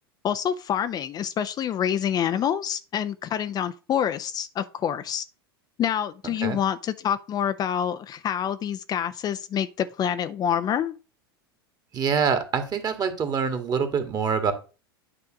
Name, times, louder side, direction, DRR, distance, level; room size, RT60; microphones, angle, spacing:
voice 1, 0.2-5.2 5.8-10.9, left 9 dB, 30° left, 0.6 m, -27 dB
voice 2, 11.9-14.5, right 6 dB, 30° right, 1.8 m, -25 dB
9.8 x 3.5 x 6.3 m
hypercardioid pair, 85°, 13 cm